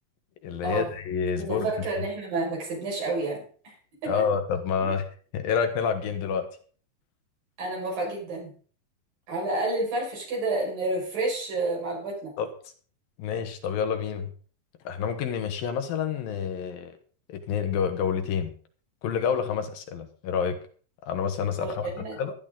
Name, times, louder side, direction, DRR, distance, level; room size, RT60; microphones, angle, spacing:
voice 1, 0.4-1.7 4.0-5.1 5.3-6.5 12.4-12.5 13.2-14.3 14.8-16.9 17.3-18.5 19.0-20.6 21.1-21.9 22.2-22.3, left 7 dB, 75° left, 7 dB, 3.2 m, -28 dB
voice 2, 1.4-3.7 4.0-4.3 4.8-4.9 7.6-8.5 9.3-12.3 21.6-22.2, right 2 dB, 65° right, -2 dB, 7.3 m, -30 dB
15.5 x 12.0 x 3.9 m, 0.43 s
omnidirectional pair, 4.3 m